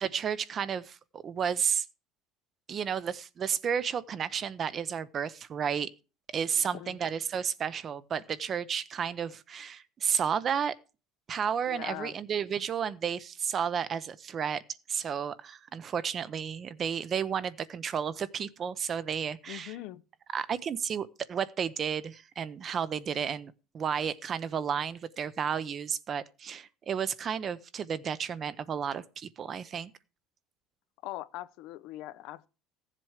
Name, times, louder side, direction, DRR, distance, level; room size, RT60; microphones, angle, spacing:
voice 1, 0.0-1.9 2.7-5.9 6.3-10.7 11.3-14.6 14.9-19.8 20.3-29.9, right 7 dB, 35° right, 0.7 m, -32 dB
voice 2, 11.7-12.1 19.5-20.0 31.0-32.5, left 15 dB, 65° left, 0.7 m, -41 dB
15.0 x 7.6 x 4.8 m
cardioid pair, 130°, 0 cm